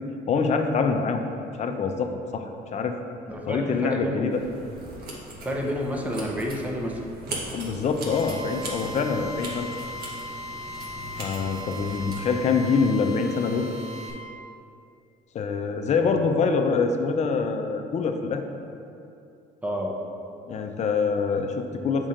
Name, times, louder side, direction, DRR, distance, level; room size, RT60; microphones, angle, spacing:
voice 1, 0.3-3.0 3.5-4.4 7.5-9.7 11.2-13.7 15.3-18.4 20.5-22.1, left 5 dB, 45° left, 5 dB, 0.5 m, -25 dB
voice 2, 3.3-4.3 5.4-7.1 19.6-19.9, equal, 10° right, 0 dB, 0.7 m, -29 dB
sound 1, 4.3-12.2, right 1 dB, 65° right, 1.2 m, -39 dB
Drill, 8.1-14.1, left 1 dB, 40° right, 1.2 m, -38 dB
7.2 x 5.3 x 2.5 m, 2.6 s
cardioid pair, 110°, 17 cm